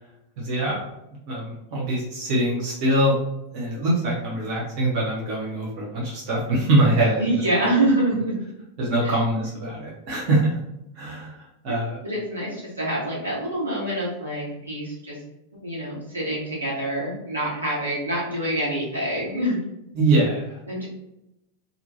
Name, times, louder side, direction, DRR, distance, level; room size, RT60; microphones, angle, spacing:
voice 1, 0.4-0.8 1.3-3.1 3.5-7.2 8.8-10.6 11.0-12.0 19.9-20.6, right 1 dB, 45° right, -4 dB, 0.7 m, -23 dB
voice 2, 7.2-8.3 9.0-9.2 12.0-15.2 15.6-19.6 20.7-20.9, right 1 dB, 80° right, -6 dB, 1.0 m, -26 dB
2.4 x 2.2 x 2.7 m, 0.87 s
figure-of-eight pair, 90°, 0 cm